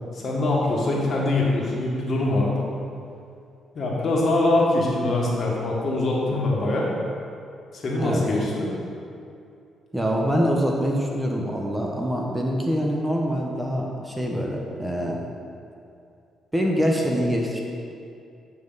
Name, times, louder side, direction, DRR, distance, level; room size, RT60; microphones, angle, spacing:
voice 1, 0.1-2.6 3.7-6.9 7.7-8.7, left 2 dB, 50° left, -3 dB, 1.8 m, -23 dB
voice 2, 9.9-15.2 16.5-17.6, equal, 15° right, -1 dB, 1.0 m, -24 dB
8.9 x 5.5 x 4.0 m, 2.5 s
supercardioid pair, 70°, 0 cm